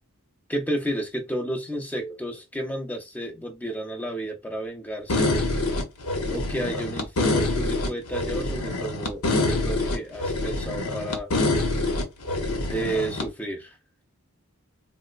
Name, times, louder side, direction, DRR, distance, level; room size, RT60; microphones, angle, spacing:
voice 1, 0.5-5.3 6.3-11.3 12.7-13.8, right 1 dB, 5° left, 0.5 m, -32 dB
sound 1, 5.1-13.3, left 2 dB, 80° left, 0.8 m, -26 dB
4.1 x 2.0 x 2.5 m
head